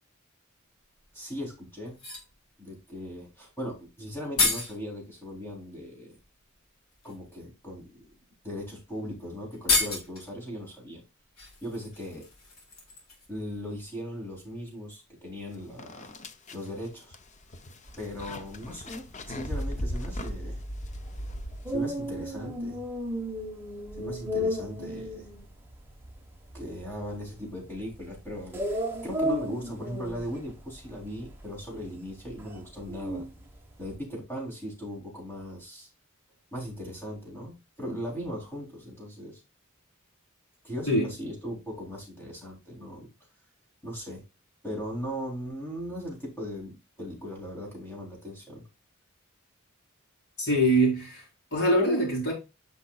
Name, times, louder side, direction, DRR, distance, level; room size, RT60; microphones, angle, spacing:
sound 1, 1.0-1.1 1.9-2.3 3.8-3.9 4.1-4.8 6.2-6.3 6.9-7.1 8.0-8.1 8.5-8.6 8.9-9.0 9.5-10.3 11.4-13.4 13.7-13.8, left 3 dB, 75° left, 3.6 m, -30 dB
voice 1, 1.1-2.0 2.6-6.2 7.0-8.1 8.4-11.0 11.6-12.3 13.3-16.1 16.5-17.1 18.0-20.6 21.7-22.8 24.0-25.3 26.5-33.3 33.8-35.9 36.5-39.4 40.6-43.1 43.8-44.2 44.6-48.6, equal, 10° left, 3.6 m, -38 dB
sound 2, 15.3-15.4 15.8-22.1, equal, 35° left, 0.7 m, -37 dB
sound 3, 17.9-34.0, equal, 10° right, 1.3 m, -35 dB
voice 2, 50.4-51.2 51.5-52.3, right 1 dB, 50° left, 4.0 m, -23 dB
10.0 x 5.3 x 2.4 m
head